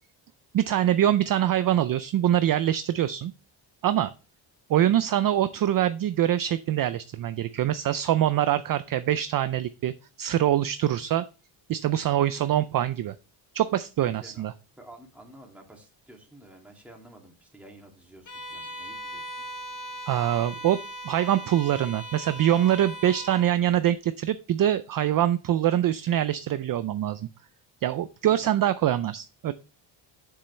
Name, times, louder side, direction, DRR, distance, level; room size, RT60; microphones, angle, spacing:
voice 1, 0.5-3.3 3.8-4.1 4.7-9.9 10.2-11.2 11.7-13.1 13.5-14.5 20.1-27.3 27.8-29.5, right 11 dB, 45° right, 13 dB, 0.4 m, -24 dB
voice 2, 14.8-19.4 28.3-28.4, right 1 dB, 5° right, -1 dB, 2.3 m, -51 dB
Bowed string instrument, 18.3-23.5, right 1 dB, 40° left, 1.1 m, -39 dB
7.3 x 6.9 x 3.2 m, 0.33 s
cardioid pair, 135°, 48 cm